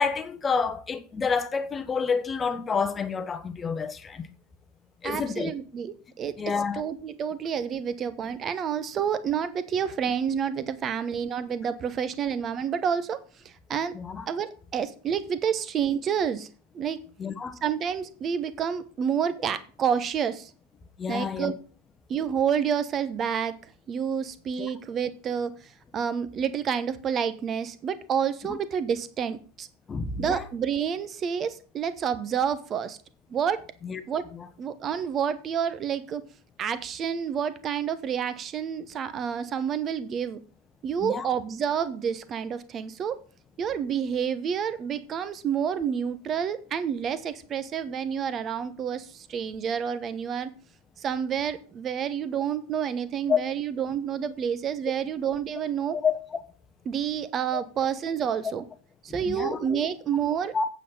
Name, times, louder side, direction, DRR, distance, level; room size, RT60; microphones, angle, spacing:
voice 1, 0.0-4.3 5.0-5.5 6.4-6.8 13.9-14.3 17.2-17.6 21.0-21.5 24.6-24.7 28.5-28.6 29.9-30.4 33.8-34.0 34.3-34.5 41.0-41.3 53.3-53.4 55.9-56.4 57.5-57.6 59.1-59.8 60.5-60.6, left 5 dB, 20° left, 1.0 m, -29 dB
voice 2, 5.0-6.4 6.7-13.9 14.3-16.5 16.7-17.0 17.6-20.5 21.1-21.5 22.1-23.5 23.9-25.5 25.9-29.7 30.2-33.0 33.3-33.6 34.1-34.2 34.6-36.2 36.6-40.4 40.8-43.2 43.6-50.5 51.0-56.0 56.9-58.6 59.0-60.7, right 8 dB, 25° right, 1.0 m, -29 dB
8.9 x 7.5 x 5.5 m
figure-of-eight pair, 90°, 0 cm